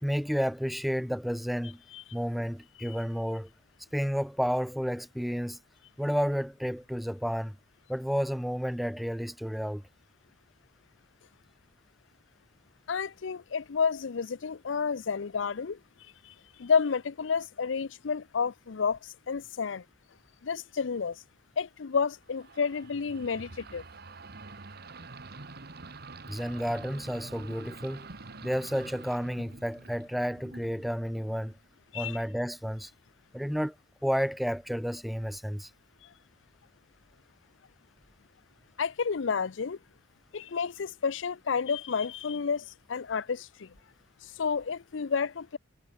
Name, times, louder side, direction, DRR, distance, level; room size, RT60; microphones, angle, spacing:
voice 1, 0.0-1.8 2.1-3.5 3.9-5.6 6.0-7.6 7.9-9.8 26.3-28.1 28.4-31.6 31.9-32.9 33.3-33.7 34.0-35.7, equal, ahead, 0.5 m, -31 dB
voice 2, 12.9-15.8 16.3-16.4 16.6-19.8 20.4-21.2 21.6-23.8 31.9-32.2 38.8-39.8 40.3-43.7 44.4-45.6, left 5 dB, 85° left, 0.6 m, -30 dB
sound 1, 22.3-31.6, right 3 dB, 55° right, 1.7 m, -47 dB
head